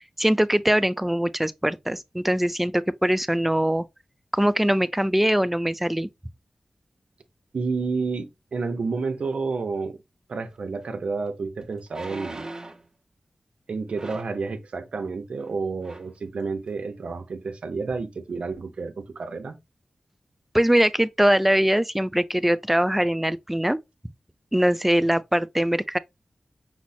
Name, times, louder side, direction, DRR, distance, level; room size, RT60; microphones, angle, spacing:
voice 1, 0.2-3.8 4.3-6.1 20.5-23.8 24.5-26.0, equal, 5° right, 0.4 m, -22 dB
voice 2, 7.5-10.0 10.3-12.5 13.7-19.6, right 4 dB, 80° right, 0.7 m, -30 dB
sound 1, 10.8-10.9 11.9-12.9 13.9-14.4 15.4-15.5 15.8-16.2 16.7-16.8, right 2 dB, 35° right, 1.0 m, -39 dB
5.9 x 2.0 x 4.1 m
wide cardioid pair, 75°, 2 cm